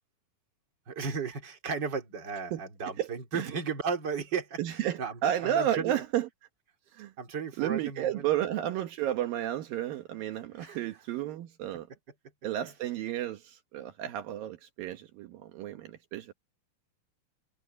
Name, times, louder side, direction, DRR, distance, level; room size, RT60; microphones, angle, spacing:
voice 1, 0.9-6.0 7.2-8.3 10.6-10.8, right 5 dB, 30° right, 3.3 m, -35 dB
voice 2, 4.6-6.3 6.9-7.1 7.6-11.9 12.4-16.3, right 11 dB, 75° right, 2.9 m, -32 dB
omnidirectional pair, 4.2 m